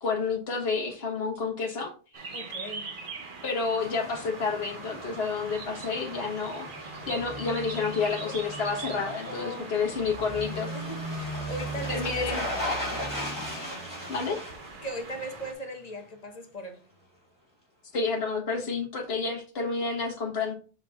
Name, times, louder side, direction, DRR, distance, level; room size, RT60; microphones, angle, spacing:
voice 1, 0.0-1.9 3.4-10.7 11.9-12.4 14.1-14.4 17.9-20.5, left 4 dB, 70° left, 1.6 m, -30 dB
sound 1, 2.1-15.5, right 4 dB, 55° right, 1.1 m, -43 dB
voice 2, 2.3-2.9 9.3-9.7 10.7-12.5 14.8-16.8, equal, 40° left, 1.2 m, -38 dB
sound 2, 3.8-15.7 16.0-16.1, equal, 15° left, 2.7 m, -37 dB
5.7 x 4.8 x 3.5 m
omnidirectional pair, 1.1 m